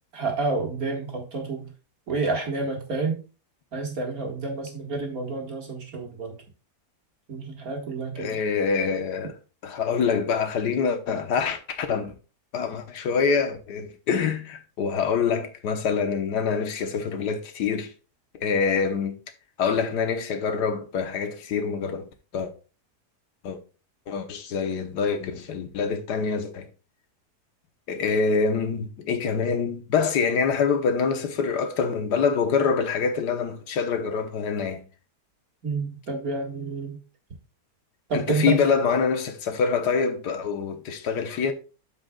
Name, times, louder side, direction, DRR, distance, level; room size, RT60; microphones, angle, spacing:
voice 1, 0.1-1.7 2.1-3.2 3.7-6.3 7.3-8.4 35.6-37.0 38.1-38.6, right 3 dB, 60° right, 2.2 m, -29 dB
voice 2, 8.2-9.3 9.6-12.1 12.5-17.9 18.3-19.2 19.6-22.1 22.3-22.5 23.4-23.6 24.1-26.7 27.9-34.8 38.1-41.5, left 5 dB, 80° left, 1.5 m, -25 dB
12.5 x 5.1 x 2.3 m
omnidirectional pair, 1.8 m